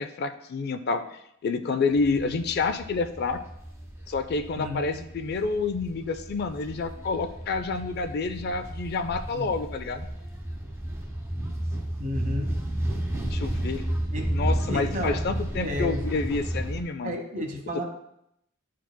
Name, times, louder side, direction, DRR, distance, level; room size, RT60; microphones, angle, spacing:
voice 1, 0.0-3.4 4.1-10.1 13.3-13.9 14.3-17.2, left 4 dB, 50° left, 9 dB, 0.4 m, -29 dB
sound 1, 1.9-16.8, right 1 dB, 15° right, 1.1 m, -32 dB
voice 2, 2.1-2.4 4.6-4.9 9.3-9.5 12.0-12.5 14.1-14.3 14.7-15.2 15.6-16.0 17.0-17.8, left 1 dB, 40° right, 2 dB, 1.1 m, -32 dB
11.5 x 4.6 x 2.2 m, 0.78 s
head